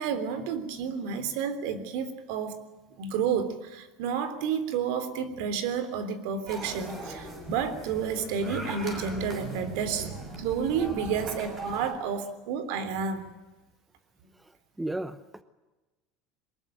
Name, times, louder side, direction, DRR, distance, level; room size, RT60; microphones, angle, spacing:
voice 1, 0.0-2.6 3.0-13.2, right 6 dB, 70° right, 12 dB, 3.4 m, -30 dB
sound 1, 6.5-11.9, right 2 dB, 25° right, 6.4 m, -40 dB
voice 2, 14.3-15.4, right 1 dB, 5° right, 13 dB, 0.8 m, -36 dB
23.0 x 20.5 x 9.1 m, 1.1 s
cardioid pair, 160°, 0 cm